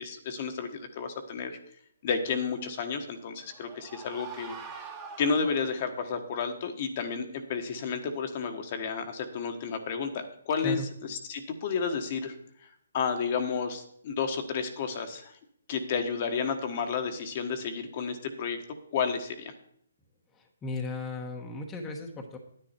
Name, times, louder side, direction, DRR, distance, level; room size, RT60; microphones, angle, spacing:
voice 1, 0.0-1.6 2.0-4.9 5.2-12.3 12.6-15.4 15.7-18.6 18.9-19.5, left 5 dB, 40° left, 6 dB, 1.3 m, -32 dB
sound 1, 3.1-6.0, right 5 dB, 15° right, 1.6 m, -45 dB
voice 2, 20.3-22.4, left 1 dB, 15° left, 1 dB, 1.2 m, -36 dB
10.5 x 10.0 x 4.4 m, 0.68 s
figure-of-eight pair, 145°, 0 cm